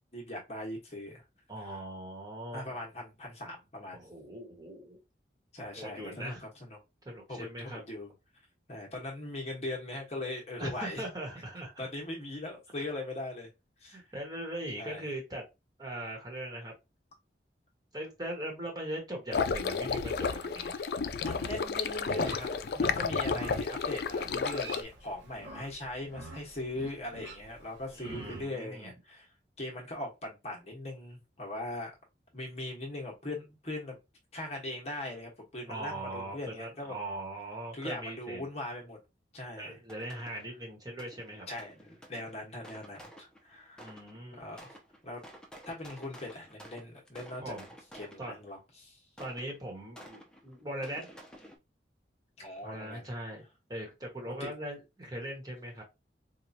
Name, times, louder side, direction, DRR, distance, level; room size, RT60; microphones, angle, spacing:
voice 1, 0.1-1.2 1.6-1.8 2.5-4.0 5.5-6.8 7.3-8.1 8.7-11.0 11.8-13.5 13.8-14.0 14.8-15.0 21.2-22.5 22.7-31.9 32.3-34.0 34.3-37.0 37.7-39.0 39.3-39.8 41.5-44.0 44.3-44.7 45.0-45.2 45.6-47.5 47.9-49.0 52.4-53.1 54.2-54.5, left 1 dB, 40° left, 1.1 m, -40 dB
voice 2, 1.5-2.8 3.9-5.0 5.7-6.4 7.0-7.8 10.6-11.9 13.9-15.4 15.8-16.7 17.9-20.9 27.9-28.9 35.7-38.5 39.6-41.5 43.8-44.4 47.4-47.7 48.2-48.3 49.2-51.1 52.6-53.4 53.7-55.8, right 1 dB, 20° right, 1.3 m, -40 dB
sound 1, 19.3-24.8, left 5 dB, 60° left, 0.3 m, -32 dB
Livestock farm animals working animals, 21.1-28.4, right 2 dB, 90° right, 1.0 m, -48 dB
sound 2, 39.9-40.6 41.0-44.2 44.6-48.5 49.2-51.6, equal, 5° left, 0.6 m, -52 dB
4.5 x 2.4 x 2.7 m
head